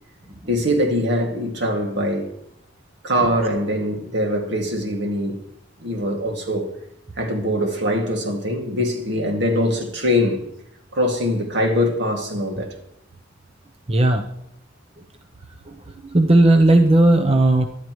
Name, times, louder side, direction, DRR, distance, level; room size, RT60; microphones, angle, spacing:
voice 1, 0.5-2.3 3.0-5.4 5.8-6.7 7.2-10.4 10.9-12.7, equal, 65° right, 2.3 m, -22 dB
voice 2, 13.9-14.2 16.1-17.7, right 2 dB, 30° right, 0.7 m, -15 dB
23.0 x 11.5 x 3.2 m
head